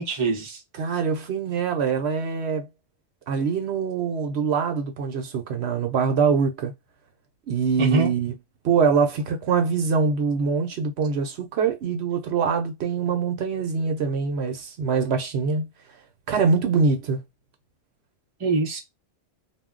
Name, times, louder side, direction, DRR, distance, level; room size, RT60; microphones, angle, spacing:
voice 1, 0.0-0.6 7.8-8.1 18.4-18.8, right 3 dB, 35° right, 0.7 m, -24 dB
voice 2, 0.8-2.7 3.3-6.7 7.5-8.3 8.6-15.7 16.3-17.2, right 5 dB, 70° right, 0.9 m, -24 dB
2.3 x 2.1 x 3.6 m
omnidirectional pair, 1.1 m